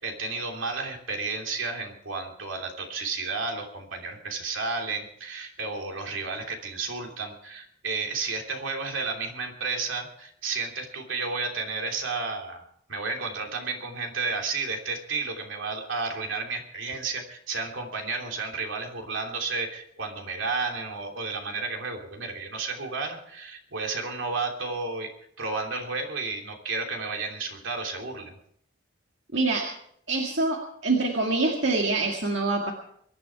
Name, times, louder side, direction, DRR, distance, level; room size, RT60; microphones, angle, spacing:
voice 1, 0.0-12.6 12.9-25.1 25.4-28.3, right 4 dB, 90° right, 2 dB, 3.1 m, -32 dB
voice 2, 29.3-29.7 30.1-32.7, right 3 dB, 75° right, 0 dB, 2.0 m, -25 dB
23.0 x 11.0 x 4.7 m, 0.69 s
head